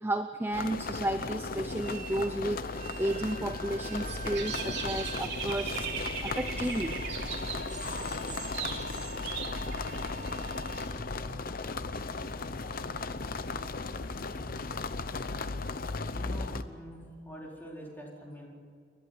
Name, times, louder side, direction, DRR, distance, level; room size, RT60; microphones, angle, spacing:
voice 1, 0.0-2.6 3.0-5.9 6.2-7.0, right 1 dB, 10° right, 7 dB, 0.6 m, -32 dB
sound 1, 0.5-16.6, left 3 dB, 45° left, 0.8 m, -36 dB
sound 2, 1.7-10.9, right 3 dB, 40° right, 1.3 m, -46 dB
Dog / Bird, 3.9-10.9, right 5 dB, 60° right, 3.2 m, -39 dB
voice 2, 16.1-18.5, equal, 10° left, -3 dB, 4.2 m, -45 dB
29.0 x 11.5 x 9.5 m, 2.1 s
head